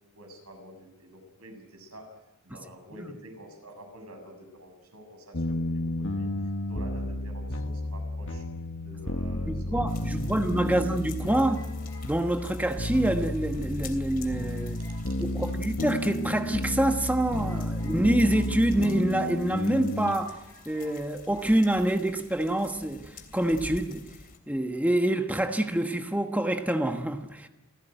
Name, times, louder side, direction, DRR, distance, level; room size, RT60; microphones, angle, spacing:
voice 1, 0.1-2.0 2.4-6.3 6.7-8.4 8.8-10.7 15.4-15.5, equal, 85° right, 5 dB, 7.0 m, -48 dB
sound 1, 5.3-20.1, left 1 dB, 60° left, 1.6 m, -32 dB
voice 2, 9.4-11.6 12.0-14.8 15.2-20.4 20.7-24.0 24.5-27.5, right 1 dB, 5° right, 5 dB, 1.2 m, -26 dB
sound 2, 9.9-24.4, left 4 dB, 40° left, 3.1 m, -48 dB
sound 3, 9.9-10.6 11.3-13.6 13.9-14.0 14.3-15.1 15.3-16.3 16.9-17.0 17.2-19.5 19.8-19.9 20.2-21.0 21.3-21.5, left 2 dB, 15° left, 5.6 m, -55 dB
28.0 x 16.5 x 9.2 m, 1.0 s
head